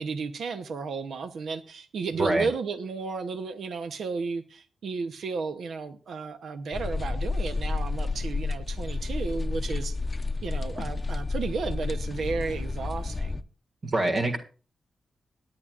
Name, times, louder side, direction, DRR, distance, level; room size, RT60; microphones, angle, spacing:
voice 1, 0.0-10.0 10.4-13.4, right 4 dB, 85° right, 8 dB, 0.8 m, -33 dB
sound 1, 6.7-13.4, left 3 dB, 35° left, 0.6 m, -31 dB
voice 2, 13.8-14.4, right 2 dB, 55° right, 2 dB, 1.8 m, -25 dB
19.5 x 9.7 x 2.4 m, 0.35 s
cardioid pair, 70°, 0 cm